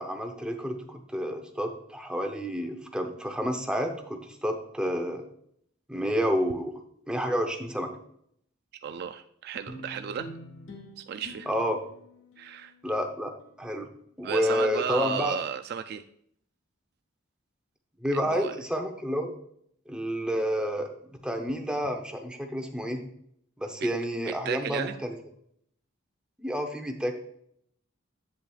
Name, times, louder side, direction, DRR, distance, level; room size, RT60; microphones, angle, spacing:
voice 1, 0.0-5.2 5.9-6.7 7.1-7.9 11.5-11.8 12.8-13.3 13.6-13.9 14.2-15.4 18.0-19.3 19.9-20.9 21.2-23.0 23.6-25.1 26.4-27.2, equal, 5° right, 4 dB, 0.7 m, -29 dB
voice 2, 8.8-10.3 11.0-11.5 12.4-12.7 14.2-16.0 18.1-18.5 23.8-23.9 24.3-24.9, right 7 dB, 55° right, 8 dB, 0.3 m, -33 dB
sound 1, 9.7-14.3, equal, 80° left, 1.4 m, -47 dB
8.4 x 7.3 x 2.4 m, 0.69 s
head